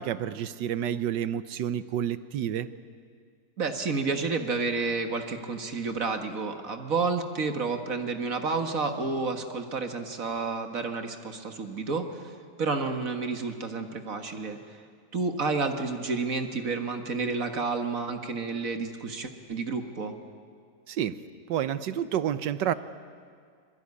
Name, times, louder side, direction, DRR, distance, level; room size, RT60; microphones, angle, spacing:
voice 1, 0.0-2.7 20.9-21.2 21.5-22.7, right 10 dB, 90° right, 14 dB, 1.5 m, -29 dB
voice 2, 3.6-12.3 12.6-14.6 15.1-20.1, right 4 dB, 50° right, 6 dB, 2.0 m, -30 dB
25.5 x 22.0 x 9.7 m, 2.1 s
omnidirectional pair, 1.8 m